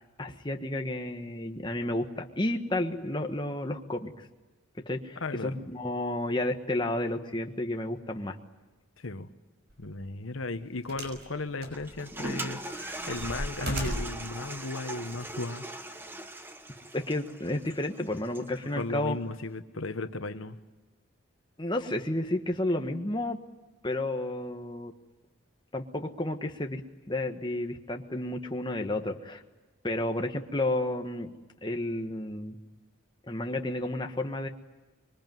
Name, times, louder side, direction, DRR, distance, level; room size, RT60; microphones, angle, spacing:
voice 1, 0.2-4.3 4.8-8.4 16.9-19.2 21.6-23.4 23.8-24.9 25.7-26.8 27.1-29.4 29.8-31.3 31.6-32.6 33.3-34.5, left 1 dB, 20° left, 4 dB, 1.4 m, -31 dB
voice 2, 5.2-5.6 9.0-9.3 9.8-12.6 13.1-15.7 18.7-20.6, left 2 dB, 80° left, 9 dB, 1.2 m, -35 dB
sound 1, 9.7-9.9 10.9-11.2 11.6-12.3 12.7-14.2 15.1-15.2, right 1 dB, 50° right, 5.9 m, -36 dB
Toilet flush, 11.7-18.7, right 1 dB, 10° right, 1.1 m, -40 dB
25.5 x 22.5 x 9.3 m, 1.2 s
head